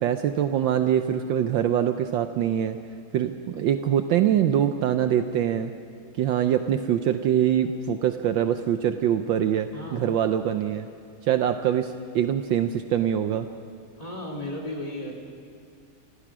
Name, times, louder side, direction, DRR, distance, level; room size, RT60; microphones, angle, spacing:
voice 1, 0.0-2.8 3.1-5.7 6.2-10.9 11.2-13.5, right 10 dB, 70° right, 8 dB, 1.3 m, -24 dB
voice 2, 9.7-10.1 14.0-15.1, left 1 dB, 15° left, 0 dB, 3.1 m, -34 dB
29.5 x 15.0 x 6.1 m, 2.3 s
omnidirectional pair, 2.3 m